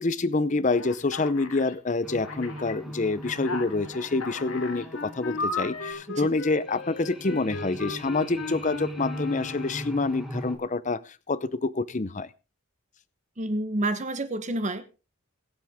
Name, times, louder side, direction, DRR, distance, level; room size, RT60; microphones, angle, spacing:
voice 1, 0.0-12.3, left 3 dB, 35° left, 17 dB, 0.6 m, -27 dB
Alarm, 0.7-1.7 2.2-2.7 3.2-4.9 5.4-5.9, left 3 dB, 90° left, 2.0 m, -35 dB
sound 1, 2.0-10.6, right 1 dB, ahead, 1.6 m, -40 dB
Wind instrument woodwind instrument, 4.4-10.1, left 3 dB, 60° left, 1.0 m, -39 dB
voice 2, 13.4-14.9, right 1 dB, 35° right, 11 dB, 0.9 m, -29 dB
22.5 x 7.7 x 3.5 m, 0.31 s
head